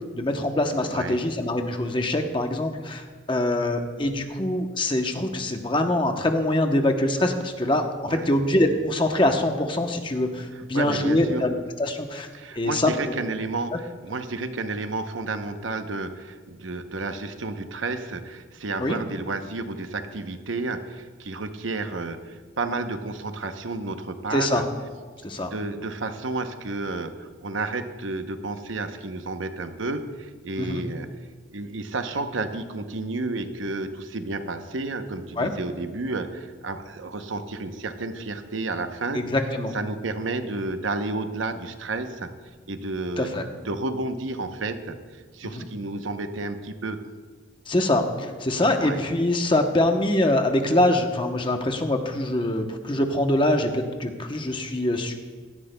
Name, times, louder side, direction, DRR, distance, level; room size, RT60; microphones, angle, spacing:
voice 1, 0.1-7.8 8.1-12.3 12.5-12.9 18.8-19.0 24.3-24.6 25.2-25.5 30.6-30.8 35.4-35.5 39.1-39.7 43.2-43.4 45.5-45.7 47.7-55.1, left 1 dB, 25° left, 5 dB, 0.8 m, -24 dB
voice 2, 10.7-11.4 12.3-24.7 25.1-25.2 25.4-31.1 31.5-39.2 39.7-42.3 42.7-45.0 45.3-47.0 48.8-49.0, right 3 dB, 80° right, 8 dB, 0.8 m, -31 dB
16.5 x 13.5 x 2.2 m, 1.4 s
head